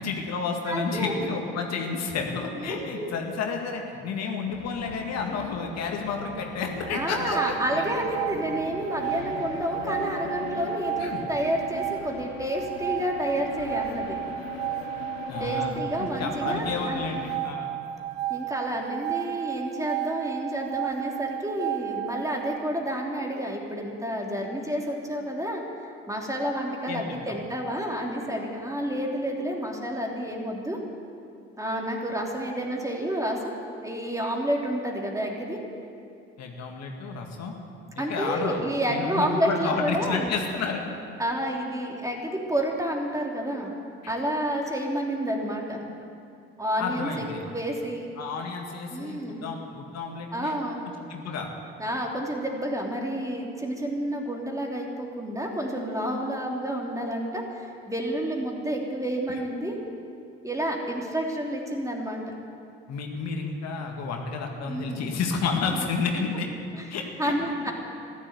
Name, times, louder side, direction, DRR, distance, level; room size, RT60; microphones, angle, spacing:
voice 1, 0.0-7.9 11.0-11.2 15.3-17.7 26.9-27.4 36.4-37.5 37.9-38.6 38.9-40.8 44.0-44.1 46.8-47.4 48.2-50.6 51.1-51.5 59.3-59.4 62.9-66.5 66.9-67.3, left 5 dB, 60° left, 2 dB, 2.0 m, -31 dB
voice 2, 0.7-1.1 2.6-3.1 6.9-14.2 15.4-17.0 18.3-30.8 31.6-33.6 33.8-35.6 38.0-40.3 41.2-43.7 44.1-45.8 46.6-47.1 47.4-48.1 48.9-49.5 50.3-50.8 51.8-59.8 60.4-62.2 64.7-65.0 65.7-65.8 66.8-66.9 67.2-67.7, equal, 10° right, 0 dB, 3.2 m, -30 dB
sound 1, 4.5-17.4, left 8 dB, 80° left, 1.0 m, -40 dB
sound 2, 6.8-22.6, right 14 dB, 80° right, 0.5 m, -33 dB
14.5 x 11.5 x 8.2 m, 2.5 s
hypercardioid pair, 55°, 30 cm